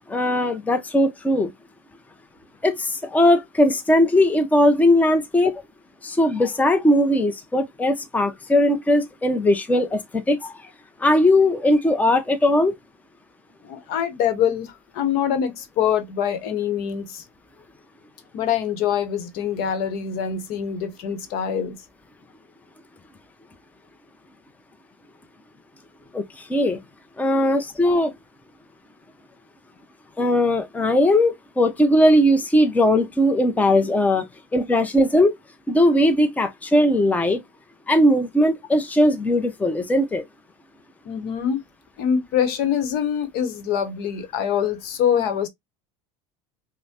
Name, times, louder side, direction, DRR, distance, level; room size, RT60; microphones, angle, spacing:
voice 1, 0.1-1.5 2.6-5.5 6.0-10.5 11.0-12.7 26.1-26.8 27.2-28.1 30.2-34.2 34.5-35.3 35.7-37.4 37.9-40.2, left 1 dB, 10° left, 0.7 m, -19 dB
voice 2, 13.6-17.2 18.3-21.7 41.0-41.6 42.0-45.5, left 8 dB, 60° left, 1.0 m, -24 dB
5.4 x 2.1 x 2.8 m
hypercardioid pair, 95°, 18 cm